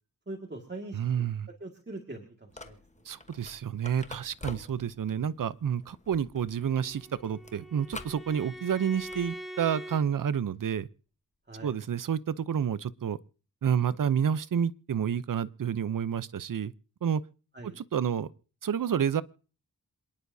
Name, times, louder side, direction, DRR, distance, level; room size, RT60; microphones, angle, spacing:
voice 1, 0.3-1.3 1.6-2.8 11.5-11.7 17.5-17.8, right 2 dB, 30° right, 2.1 m, -42 dB
voice 2, 0.9-1.5 3.1-10.9 11.6-13.2 13.6-16.7 17.0-17.2 17.6-18.3 18.6-19.2, right 8 dB, 60° right, 0.7 m, -29 dB
sound 1, 2.5-9.3, left 2 dB, 20° left, 1.2 m, -48 dB
Bowed string instrument, 6.5-10.0, right 1 dB, ahead, 2.7 m, -43 dB
27.5 x 10.5 x 2.7 m
wide cardioid pair, 85°, 36 cm